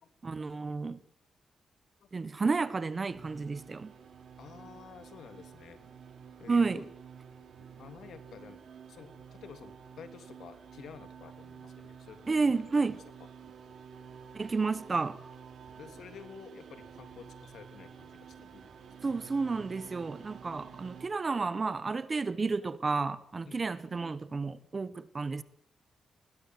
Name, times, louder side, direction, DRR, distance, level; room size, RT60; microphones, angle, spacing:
voice 1, 0.2-1.0 2.1-3.9 6.5-6.9 12.3-13.0 14.3-15.2 19.0-25.4, right 4 dB, 25° right, 1.2 m, -31 dB
sound 1, 3.1-21.1, right 7 dB, 60° right, 4.6 m, -51 dB
voice 2, 4.4-5.9 6.4-6.9 7.8-8.6 8.9-13.0 13.4-13.6 15.8-18.9 19.2-19.3 23.4-24.5, left 6 dB, 70° left, 3.1 m, -51 dB
28.5 x 21.0 x 7.8 m
wide cardioid pair, 175°, 0 cm